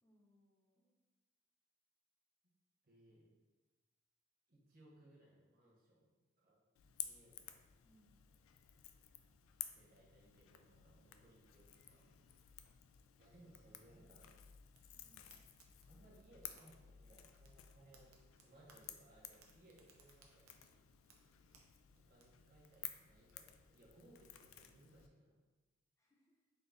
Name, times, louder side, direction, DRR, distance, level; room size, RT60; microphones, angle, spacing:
voice 1, 0.0-1.0 7.8-8.2 14.9-15.6 26.0-26.4, equal, 15° left, -5 dB, 0.6 m, -74 dB
voice 2, 2.8-3.3 4.5-6.6 7.0-7.4 9.7-12.2 13.2-14.4 15.9-18.1 18.4-20.7 22.1-25.4, right 1 dB, 45° right, -4 dB, 1.0 m, -65 dB
Crackle / Crack, 6.8-25.1, left 11 dB, 80° left, 0.3 m, -55 dB
Fire, 14.7-23.8, right 4 dB, 90° right, 0.6 m, -71 dB
4.0 x 2.7 x 3.8 m, 1.2 s
head